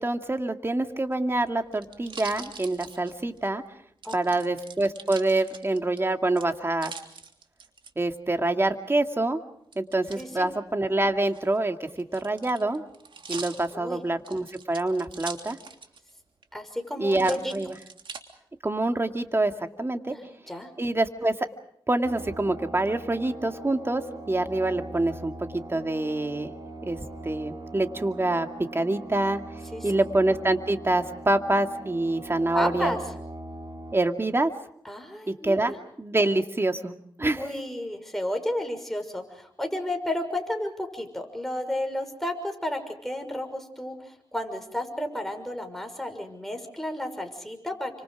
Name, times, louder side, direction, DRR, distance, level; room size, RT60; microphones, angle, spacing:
voice 1, 0.0-3.6 4.1-6.9 8.0-9.4 9.8-11.8 12.1-12.8 13.3-15.6 17.0-17.8 18.6-19.5 19.8-20.1 20.8-21.3 21.9-24.0 24.3-25.3 25.7-26.5 26.8-27.0 27.2-28.5 28.7-29.4 29.8-33.0 33.9-34.5 35.3-37.6, right 2 dB, 25° right, 6 dB, 2.3 m, -26 dB
sound 1, 1.0-3.5 4.0-6.0 6.4-7.9 9.7-10.3 11.2-16.1 16.4-16.5 17.1-18.2 18.8-19.4, right 5 dB, 65° right, 3.0 m, -43 dB
voice 2, 10.2-10.5 13.7-14.0 16.5-17.5 20.1-20.7 29.7-29.9 32.5-33.0 34.8-35.8 37.2-47.9, left 1 dB, 5° left, 5 dB, 6.2 m, -32 dB
sound 2, 22.0-33.9, right 2 dB, 45° right, 6.9 m, -41 dB
30.0 x 26.0 x 4.9 m, 0.68 s
cardioid pair, 60°, 9 cm